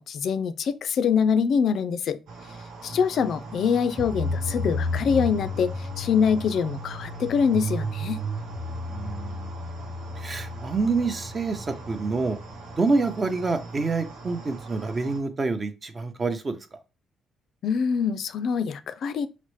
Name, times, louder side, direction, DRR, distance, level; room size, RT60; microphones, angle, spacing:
voice 1, 0.0-2.2 2.8-8.2 17.6-19.3, left 6 dB, 65° left, 0.3 m, -24 dB
sound 1, 2.3-15.2, right 3 dB, 85° right, 0.8 m, -42 dB
sound 2, 4.0-12.8, left 1 dB, ahead, 0.8 m, -33 dB
voice 2, 8.9-9.7 10.2-12.4 12.8-16.6, right 3 dB, 35° right, 0.6 m, -27 dB
4.1 x 2.0 x 3.1 m
cardioid pair, 90°, 0 cm